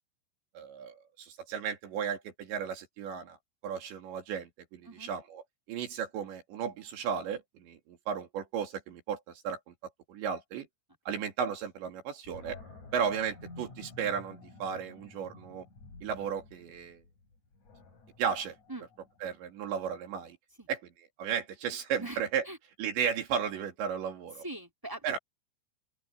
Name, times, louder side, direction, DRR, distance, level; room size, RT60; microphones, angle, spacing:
voice 1, 0.5-3.4 3.6-5.4 5.7-9.7 10.1-10.7 11.1-12.6 12.9-15.6 16.0-17.0 18.2-18.6 19.2-20.4 20.7-20.8 21.2-22.4 22.8-24.4 25.0-25.2, right 7 dB, 65° right, 4.9 m, -34 dB
Animal, 12.2-19.4, left 3 dB, 40° left, 8.1 m, -51 dB
voice 2, 22.0-22.6 24.4-25.2, right 2 dB, 5° right, 3.0 m, -42 dB
open air
omnidirectional pair, 5.6 m